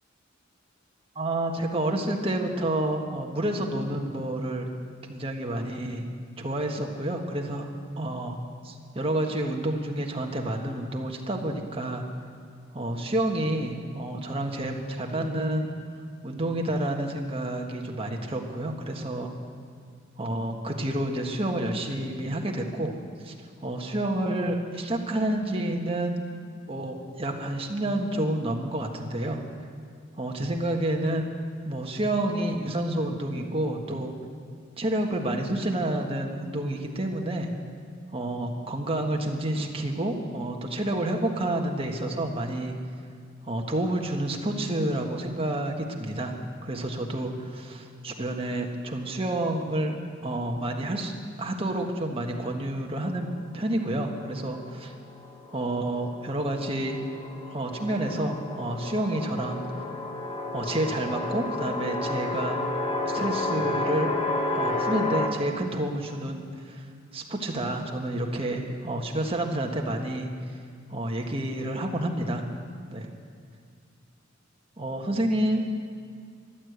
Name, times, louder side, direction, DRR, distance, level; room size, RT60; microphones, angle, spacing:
voice 1, 1.1-4.7 5.1-6.1 6.4-7.7 8.0-8.4 8.6-12.1 12.7-15.7 16.2-19.3 20.2-22.9 23.2-26.2 26.7-29.4 30.2-31.3 31.6-34.1 34.8-37.5 38.1-42.7 43.4-46.3 46.6-49.9 50.2-51.1 51.4-54.9 55.5-57.0 57.5-59.6 60.5-62.6 63.0-64.1 64.5-66.8 67.1-70.3 70.9-72.4 72.9-73.1 74.8-75.6, right 1 dB, 30° right, 2 dB, 1.5 m, -29 dB
sound 1, 55.1-65.3, left 2 dB, 25° left, 1.6 m, -31 dB
14.5 x 11.5 x 8.0 m, 2.1 s
head